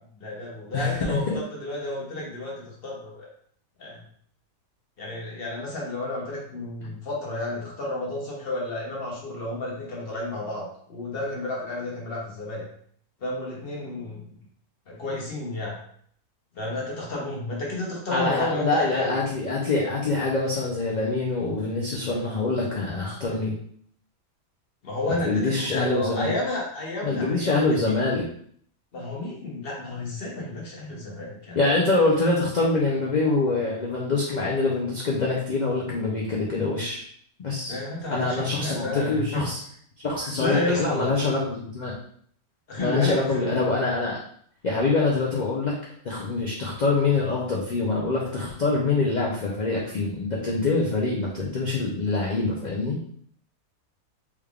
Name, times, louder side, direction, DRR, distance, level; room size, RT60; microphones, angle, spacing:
voice 1, 0.2-3.3 3.8-4.0 5.0-12.7 13.2-14.2 14.9-15.7 16.5-19.2 24.8-28.0 28.9-31.6 37.7-39.4 40.4-41.1 42.7-43.6, left 2 dB, 50° left, -3 dB, 0.9 m, -31 dB
voice 2, 0.7-1.4 18.1-23.5 25.1-26.3 27.0-28.2 31.6-37.0 37.4-37.8 38.1-39.6 40.0-41.9 42.8-44.2 44.6-45.7 46.0-53.0, left 3 dB, 75° left, -3 dB, 0.4 m, -25 dB
3.4 x 3.4 x 2.3 m, 0.62 s
omnidirectional pair, 1.5 m